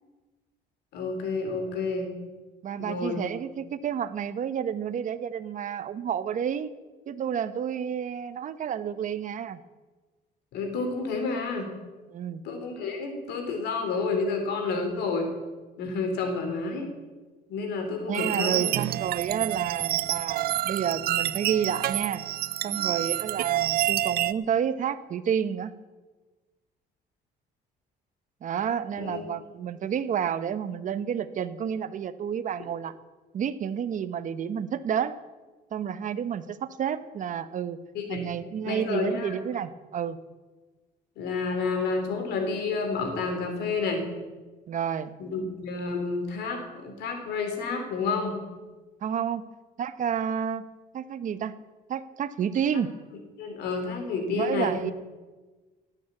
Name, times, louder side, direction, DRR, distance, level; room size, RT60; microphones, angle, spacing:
voice 1, 0.9-2.1 2.8-3.2 10.5-11.7 12.4-15.3 15.8-16.9 17.5-18.7 22.7-22.8 29.0-29.2 37.9-38.2 38.6-39.4 41.2-44.0 45.2-48.4 52.7-52.8 53.4-54.7, left 4 dB, 80° left, 5 dB, 3.9 m, -30 dB
voice 2, 2.6-6.7 7.1-9.6 12.1-12.4 18.1-22.2 22.6-25.7 28.4-32.9 33.3-35.2 35.7-37.8 38.1-40.2 44.7-45.1 49.0-49.5 49.8-50.6 50.9-51.5 51.9-52.9 54.3-54.9, right 8 dB, 50° right, 13 dB, 1.0 m, -30 dB
sound 1, 18.1-24.3, right 13 dB, 65° right, 0.6 m, -28 dB
18.0 x 9.3 x 8.5 m, 1.3 s
cardioid pair, 110°, 17 cm